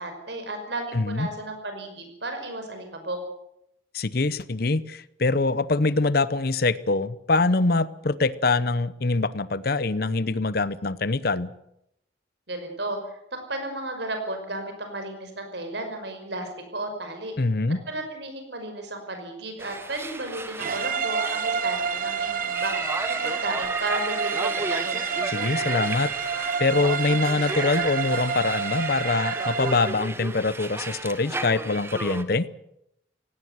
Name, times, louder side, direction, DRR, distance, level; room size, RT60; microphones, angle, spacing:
voice 1, 0.0-3.2 12.5-13.0 13.3-17.3 17.9-22.7 23.2-25.0, right 2 dB, 60° right, 6 dB, 5.5 m, -33 dB
voice 2, 0.9-1.3 3.9-11.5 17.4-17.8 25.3-32.5, left 3 dB, 50° left, 18 dB, 0.8 m, -24 dB
sound 1, 19.6-32.2, right 2 dB, 10° right, 1.1 m, -34 dB
sound 2, 20.6-30.1, right 6 dB, 45° right, 0.9 m, -29 dB
17.5 x 17.0 x 9.4 m, 0.79 s
head